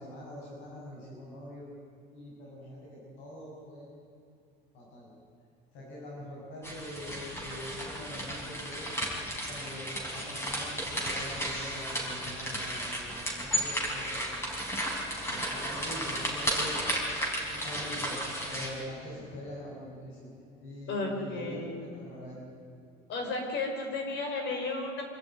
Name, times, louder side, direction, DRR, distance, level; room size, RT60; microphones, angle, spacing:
voice 1, 0.0-1.7 2.1-3.9 4.7-5.1 5.7-8.9 9.3-14.3 14.5-14.6 15.3-16.8 17.5-18.2 18.5-20.3 20.6-22.4, left 1 dB, 80° left, -4 dB, 6.8 m, -44 dB
sound 1, 6.6-18.7, equal, 10° left, 5.1 m, -34 dB
voice 2, 20.9-21.8 23.1-25.0, left 3 dB, 60° left, 3 dB, 5.2 m, -33 dB
26.0 x 13.5 x 9.3 m, 2.5 s
cardioid pair, 160°, 20 cm